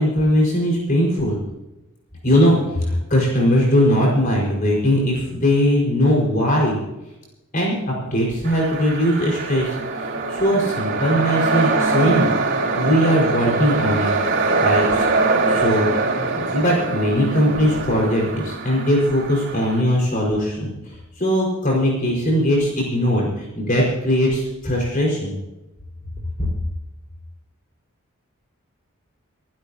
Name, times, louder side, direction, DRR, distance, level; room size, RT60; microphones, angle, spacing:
voice 1, 0.0-1.4 2.2-6.8 7.5-12.3 12.7-14.1 14.6-15.1 15.5-15.9 16.2-25.3, equal, 40° left, -3 dB, 5.1 m, -20 dB
sound 1, 8.4-19.8, right 3 dB, 50° right, 4.5 m, -23 dB
27.0 x 12.0 x 2.9 m, 0.97 s
head